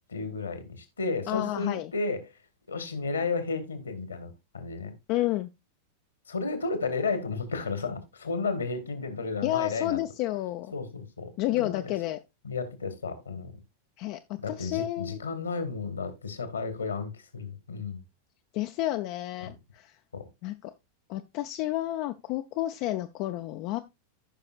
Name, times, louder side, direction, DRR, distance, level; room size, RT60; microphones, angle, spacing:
voice 1, 0.1-2.2 2.7-4.9 6.3-10.0 10.7-11.9 12.4-13.5 14.4-18.0 20.1-20.2, left 4 dB, 75° left, 1.7 m, -33 dB
voice 2, 1.3-1.9 5.1-5.5 9.4-10.7 11.4-12.2 14.0-14.2 14.5-15.2 18.5-19.9 20.4-20.7 21.1-23.8, left 15 dB, 45° left, 0.5 m, -30 dB
14.5 x 5.7 x 2.4 m
figure-of-eight pair, 90°, 0 cm